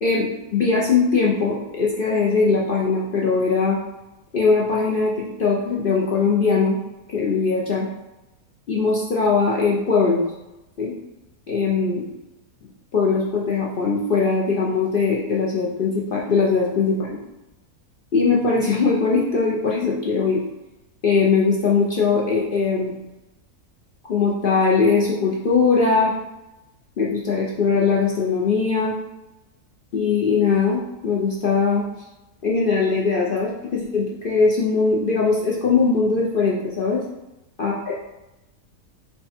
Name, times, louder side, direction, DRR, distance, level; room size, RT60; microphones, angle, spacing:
voice 1, 0.0-3.8 4.3-6.8 7.1-7.9 8.7-10.2 10.8-10.9 11.5-12.0 12.6-17.2 18.1-20.4 21.0-22.9 24.1-26.1 27.0-28.9 29.9-31.9 32.4-37.0 37.6-38.0, left 4 dB, 60° left, -4 dB, 0.5 m, -20 dB
4.6 x 2.2 x 4.2 m, 0.96 s
omnidirectional pair, 1.7 m